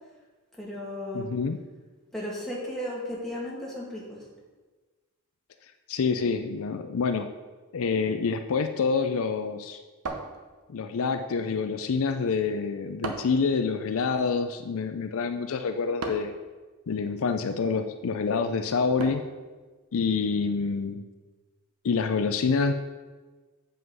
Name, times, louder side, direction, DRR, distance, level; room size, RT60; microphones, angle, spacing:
voice 1, 0.6-1.3 2.1-4.2, left 1 dB, ahead, -5 dB, 2.0 m, -35 dB
voice 2, 1.1-1.6 5.9-7.3 7.7-9.8 10.7-16.3 16.9-19.2 19.9-21.0 21.8-22.7, left 5 dB, 65° left, 7 dB, 0.5 m, -27 dB
sound 1, 10.1-10.9 13.0-13.5 16.0-16.4 19.0-19.4, right 3 dB, 85° right, 1.0 m, -36 dB
7.8 x 5.5 x 5.5 m, 1.3 s
head